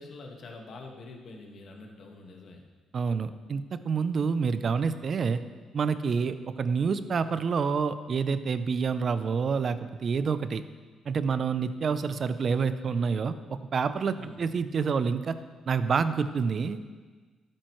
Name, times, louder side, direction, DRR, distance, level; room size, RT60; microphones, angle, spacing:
voice 1, 0.0-2.7 14.1-14.5, left 3 dB, 60° left, 1 dB, 1.5 m, -45 dB
voice 2, 2.9-5.4 5.7-10.6 11.1-15.4 15.7-16.8, right 5 dB, 50° right, 12 dB, 0.5 m, -28 dB
12.0 x 8.8 x 3.1 m, 1.4 s
cardioid pair, 90°, 0 cm